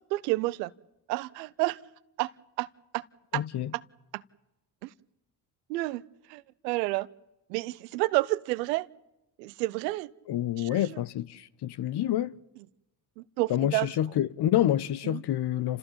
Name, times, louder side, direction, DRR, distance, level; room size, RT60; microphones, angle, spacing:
voice 1, 0.1-0.7 1.1-1.8 2.2-2.3 2.6-2.7 2.9-3.0 3.3-3.4 4.1-4.2 4.8-4.9 5.7-6.0 6.3-7.1 7.5-8.9 9.4-10.1 10.6-10.8 13.2-13.9 15.0-15.2, right 21 dB, 90° right, 0.7 m, -29 dB
voice 2, 3.3-3.7 10.3-12.3 13.5-15.8, left 12 dB, 55° left, 1.0 m, -28 dB
29.0 x 14.5 x 8.8 m
hypercardioid pair, 60°, 48 cm